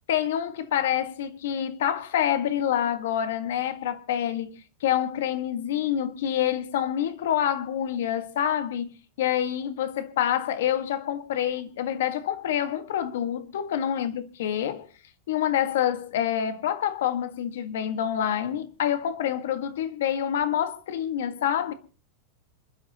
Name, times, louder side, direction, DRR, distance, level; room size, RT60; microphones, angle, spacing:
voice 1, 0.1-8.9 9.2-14.9 15.3-21.7, left 10 dB, 75° left, 1.8 m, -27 dB
27.0 x 12.5 x 3.0 m
supercardioid pair, 180°, 0 cm